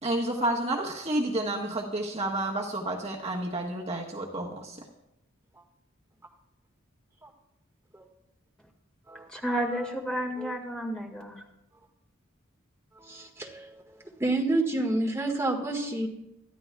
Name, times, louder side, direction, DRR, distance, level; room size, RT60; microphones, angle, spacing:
voice 1, 0.0-4.8, right 1 dB, 30° right, -1 dB, 1.3 m, -30 dB
voice 2, 9.3-11.4, equal, 5° left, 0 dB, 1.8 m, -31 dB
voice 3, 13.0-13.8 14.2-16.1, right 2 dB, 10° right, -1 dB, 1.7 m, -29 dB
23.5 x 13.5 x 2.3 m, 0.87 s
head